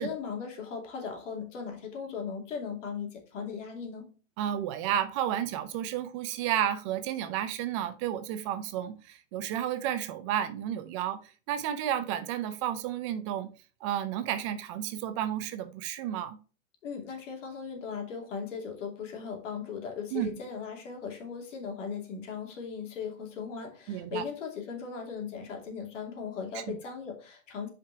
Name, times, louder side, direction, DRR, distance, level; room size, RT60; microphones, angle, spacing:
voice 1, 0.0-4.1 16.8-27.7, left 6 dB, 65° left, 2.6 m, -38 dB
voice 2, 4.4-13.5 13.8-16.4 20.1-20.3 23.9-24.2 26.5-26.8, right 10 dB, 25° right, 0.5 m, -32 dB
5.5 x 5.2 x 4.6 m
hypercardioid pair, 155°, 39 cm